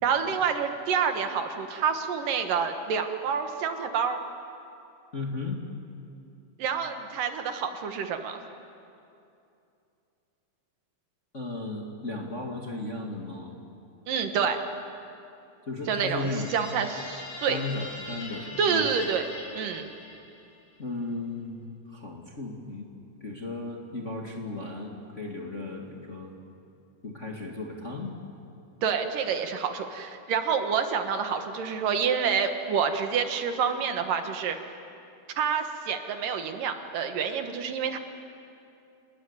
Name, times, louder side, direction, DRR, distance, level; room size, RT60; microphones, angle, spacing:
voice 1, 0.0-4.2 6.6-8.4 14.1-14.6 15.9-17.6 18.6-19.9 28.8-34.6 35.4-38.0, right 6 dB, 65° right, 6 dB, 3.0 m, -28 dB
voice 2, 5.1-5.6 11.3-13.5 15.7-16.5 17.5-18.9 20.8-21.6 21.9-22.9 23.2-26.3 27.0-28.1, left 2 dB, 25° left, 0 dB, 1.6 m, -35 dB
sound 1, 15.8-20.6, left 2 dB, 65° left, 5.4 m, -42 dB
28.5 x 20.0 x 9.8 m, 2.6 s
omnidirectional pair, 4.3 m